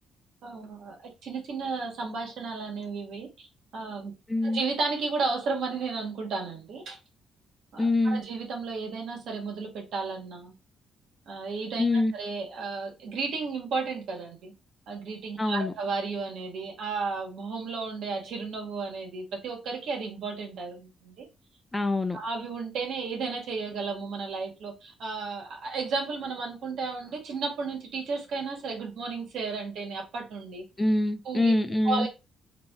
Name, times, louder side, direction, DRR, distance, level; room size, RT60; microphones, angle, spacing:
voice 1, 0.4-3.5 3.7-4.1 4.4-7.0 7.7-10.5 11.3-11.9 12.1-14.5 14.9-21.3 22.1-30.6 31.2-31.5 31.8-32.1, right 4 dB, 75° right, 1.7 m, -33 dB
voice 2, 4.3-4.6 7.8-8.2 11.8-12.1 15.4-15.7 21.7-22.2 30.8-32.1, left 2 dB, 15° left, 0.7 m, -25 dB
4.0 x 2.8 x 3.6 m
cardioid pair, 90°, 0 cm